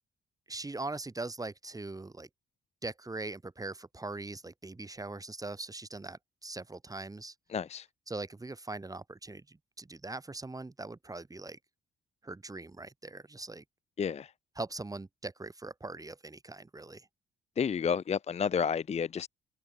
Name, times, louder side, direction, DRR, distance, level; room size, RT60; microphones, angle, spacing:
voice 1, 0.5-2.3 2.8-7.3 8.1-11.6 12.2-13.6 14.6-17.1, right 2 dB, 15° right, 2.8 m, -41 dB
voice 2, 7.5-7.9 14.0-14.3 17.6-19.3, left 6 dB, 35° left, 0.6 m, -30 dB
open air
cardioid pair, 90°, 20 cm